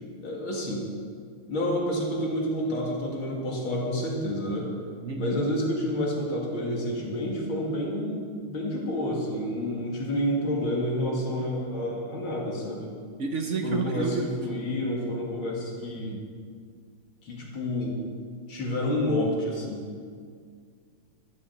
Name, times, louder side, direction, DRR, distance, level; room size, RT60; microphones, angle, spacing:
voice 1, 0.2-0.9 1.5-4.7 5.1-12.9 13.6-16.2 17.2-18.0 18.5-19.8, left 1 dB, 65° left, -2 dB, 2.9 m, -29 dB
voice 2, 5.0-5.4 13.2-14.3 16.0-16.2, right 4 dB, 60° right, 4 dB, 0.7 m, -30 dB
14.5 x 7.3 x 7.2 m, 2.1 s
omnidirectional pair, 2.4 m